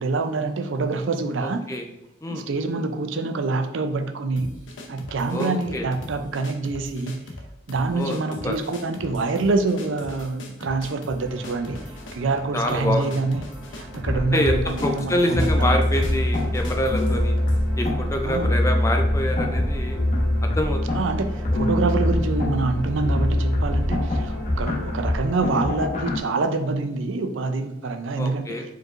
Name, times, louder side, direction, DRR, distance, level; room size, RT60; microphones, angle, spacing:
voice 1, 0.0-1.6 2.3-4.6 4.9-7.2 7.7-11.8 12.1-13.5 13.7-15.9 18.2-18.5 20.9-28.4, right 3 dB, 80° right, 7 dB, 0.5 m, -26 dB
voice 2, 1.4-1.9 2.2-2.5 5.3-5.8 7.9-8.2 8.4-8.5 12.5-13.1 14.1-17.3 17.8-20.0 20.4-21.0 28.2-28.6, left 1 dB, 15° left, 3 dB, 0.4 m, -26 dB
sound 1, 4.4-17.6, left 2 dB, 75° left, 0.7 m, -41 dB
sound 2, 11.2-25.5, equal, 10° right, 0.9 m, -41 dB
sound 3, 14.1-26.2, left 1 dB, 40° left, 0.8 m, -24 dB
4.6 x 4.6 x 2.5 m, 0.90 s
head